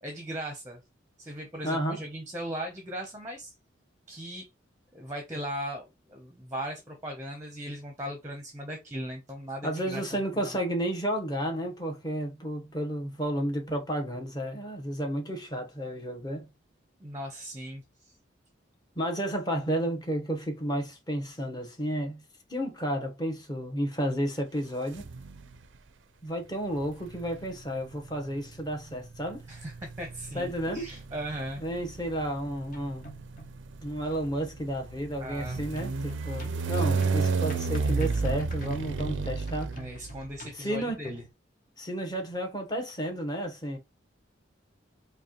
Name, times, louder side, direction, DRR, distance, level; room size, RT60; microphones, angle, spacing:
voice 1, 0.0-0.8 1.2-3.5 4.1-4.5 4.9-10.0 10.4-10.5 17.0-18.2 29.5-31.6 35.2-35.6 39.8-41.2, equal, 15° right, 0.7 m, -38 dB
voice 2, 1.6-2.0 9.6-16.5 19.0-22.2 22.5-25.0 26.2-29.4 30.3-30.9 31.6-33.0 33.8-39.8 40.5-41.0 41.8-43.8, right 1 dB, 20° left, 0.9 m, -32 dB
sound 1, 24.9-25.6 26.7-40.4, right 4 dB, 75° right, 0.4 m, -32 dB
sound 2, 32.7-33.8 35.8-41.3, left 1 dB, 45° left, 0.8 m, -48 dB
5.1 x 2.2 x 2.9 m
head